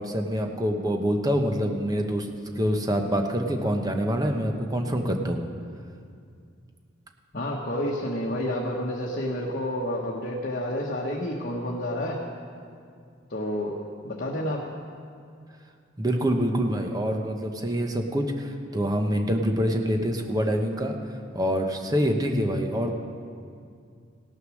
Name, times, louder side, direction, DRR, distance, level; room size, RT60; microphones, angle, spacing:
voice 1, 0.0-2.3 2.6-5.4 16.0-21.0 21.3-22.9, equal, 20° right, 3 dB, 0.9 m, -26 dB
voice 2, 7.3-12.2 13.3-13.8 14.0-14.6, left 1 dB, 50° left, -3 dB, 1.2 m, -29 dB
17.5 x 6.5 x 6.4 m, 2.3 s
head